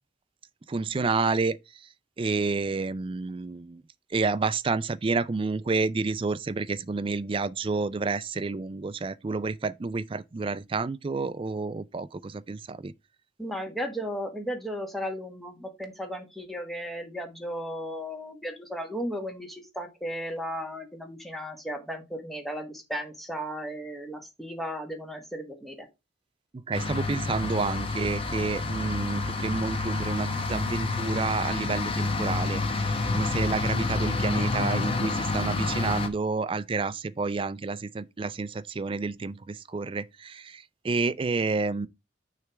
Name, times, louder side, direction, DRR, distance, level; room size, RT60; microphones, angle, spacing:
voice 1, 0.7-1.6 2.2-3.8 4.1-12.9 26.5-41.9, right 4 dB, 30° right, 0.4 m, -29 dB
voice 2, 13.4-25.9, equal, ahead, 1.4 m, -35 dB
sound 1, 26.7-36.1, left 3 dB, 30° left, 0.9 m, -29 dB
6.3 x 3.3 x 6.0 m
head